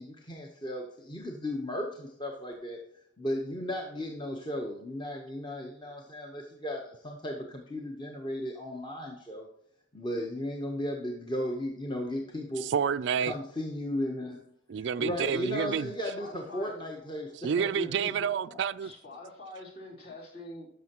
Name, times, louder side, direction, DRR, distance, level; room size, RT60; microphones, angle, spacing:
voice 1, 0.0-2.8 3.2-9.5 9.9-12.6 13.3-14.4 15.0-18.1, left 1 dB, 25° left, 0.9 m, -35 dB
voice 2, 12.6-13.3 14.7-15.9 17.4-18.9, right 7 dB, 65° right, 0.3 m, -29 dB
voice 3, 16.0-16.8 17.9-18.1 18.8-20.7, left 1 dB, 50° left, 3.3 m, -46 dB
12.0 x 6.7 x 3.0 m
head